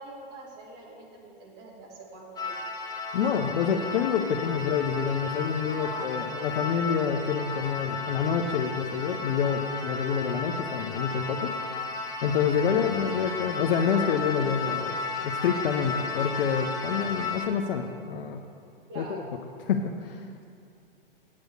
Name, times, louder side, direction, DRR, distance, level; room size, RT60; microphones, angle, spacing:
voice 1, 0.0-2.6 5.7-6.3 18.9-19.4, right 2 dB, 35° right, -1 dB, 2.0 m, -44 dB
sound 1, 2.4-17.5, left 3 dB, 15° left, 0.8 m, -34 dB
voice 2, 3.1-11.9 12.2-14.9 15.2-18.4 19.0-19.1 19.7-20.3, left 7 dB, 65° left, 3 dB, 0.7 m, -27 dB
8.5 x 6.2 x 6.7 m, 2.5 s
hypercardioid pair, 125°, 30 cm